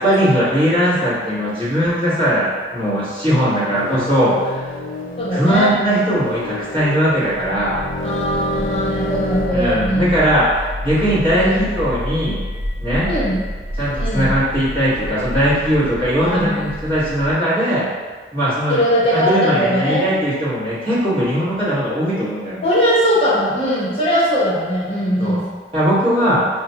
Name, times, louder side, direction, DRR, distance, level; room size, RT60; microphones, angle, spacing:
voice 1, 0.0-4.7 5.3-7.8 9.5-12.4 12.8-13.1 13.8-17.9 18.3-18.8 19.1-22.6 25.2-25.4 25.7-26.5, equal, 30° right, -11 dB, 1.3 m, -19 dB
sound 1, 3.3-9.5, left 1 dB, 45° left, 0.4 m, -28 dB
voice 2, 5.2-5.7 8.0-10.2 11.3-11.6 13.0-13.4 14.0-14.3 16.2-16.6 18.7-20.1 22.6-25.4, equal, 30° left, -9 dB, 0.9 m, -20 dB
sound 2, 7.3-17.3, left 1 dB, 70° right, 0.5 m, -29 dB
5.0 x 2.2 x 2.8 m, 1.4 s
head